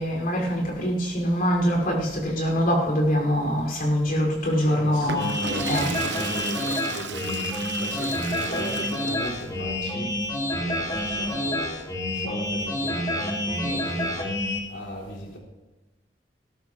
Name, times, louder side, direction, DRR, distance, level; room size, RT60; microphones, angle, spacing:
voice 1, 0.0-5.3 5.7-5.9, equal, 55° left, -2 dB, 6.1 m, -24 dB
voice 2, 4.6-10.2 10.6-15.4, equal, 80° left, -2 dB, 3.5 m, -38 dB
Water / Toilet flush, 4.9-9.4, right 5 dB, 75° right, 0.9 m, -35 dB
sound 1, 5.1-14.6, left 1 dB, 20° left, 2.6 m, -28 dB
20.0 x 16.5 x 3.3 m, 1.1 s
head